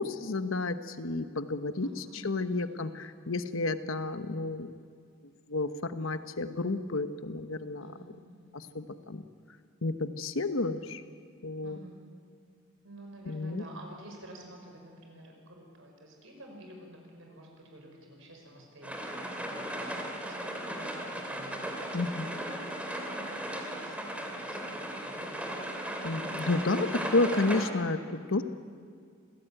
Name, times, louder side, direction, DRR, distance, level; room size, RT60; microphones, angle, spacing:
voice 1, 0.0-4.7 5.5-7.8 8.5-9.2 9.8-11.0 11.4-11.8 13.3-13.6 21.9-22.4 26.0-28.4, left 3 dB, 75° left, 10 dB, 1.1 m, -31 dB
voice 2, 1.8-2.7 7.8-8.5 11.6-12.0 12.8-19.9 20.3-25.4 26.0-26.5, right 1 dB, 70° right, 1 dB, 5.8 m, -50 dB
sound 1, 18.8-27.7, right 1 dB, 5° right, 2.8 m, -36 dB
26.5 x 17.0 x 9.1 m, 2.1 s
head